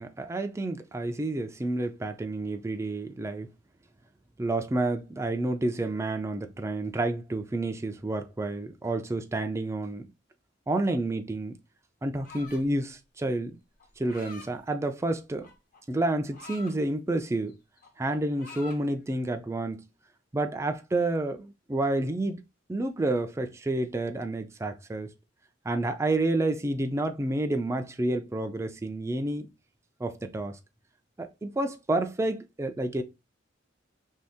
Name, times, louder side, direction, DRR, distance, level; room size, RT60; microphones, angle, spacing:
voice 1, 0.0-3.5 4.4-10.1 10.7-11.6 12.0-13.6 14.0-15.5 15.9-17.6 18.0-19.9 20.3-22.4 22.7-25.1 25.7-29.5 30.0-30.6 31.2-33.0, right 2 dB, 15° right, 0.3 m, -29 dB
sound 1, 12.2-12.8 13.8-14.5 15.4-16.8 17.2-17.5 17.8-18.8, left 3 dB, 45° left, 0.7 m, -46 dB
2.8 x 2.7 x 3.3 m
head